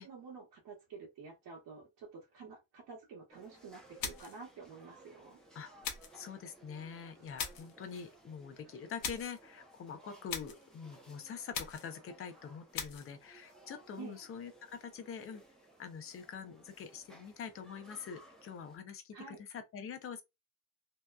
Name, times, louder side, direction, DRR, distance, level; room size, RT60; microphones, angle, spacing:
voice 1, 0.0-5.4 14.0-14.2 19.1-19.4, right 5 dB, 70° right, 1.0 m, -50 dB
sound 1, 3.3-18.8, right 2 dB, ahead, 0.7 m, -60 dB
sound 2, 4.0-4.4 5.8-6.2 7.4-7.8 9.0-9.4 10.3-10.7 11.5-12.0 12.7-13.1, left 7 dB, 70° left, 0.7 m, -40 dB
voice 2, 6.1-15.4 15.8-20.2, left 6 dB, 40° left, 0.5 m, -45 dB
2.7 x 2.2 x 2.3 m
cardioid pair, 150°, 35 cm